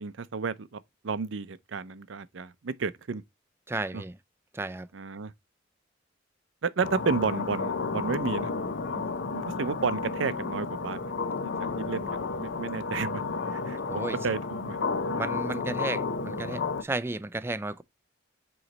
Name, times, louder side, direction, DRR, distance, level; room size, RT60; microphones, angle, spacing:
voice 1, 0.0-3.2 3.9-4.0 4.9-5.3 6.6-8.5 8.9-9.0 9.3-11.1 11.4-11.5 11.8-14.8, right 5 dB, 70° right, 0.5 m, -32 dB
voice 2, 3.7-4.1 4.5-4.9 13.9-14.2 15.2-17.8, right 2 dB, 10° right, 0.3 m, -33 dB
sound 1, 6.8-16.8, left 4 dB, 60° left, 0.6 m, -32 dB
7.7 x 3.2 x 4.0 m
head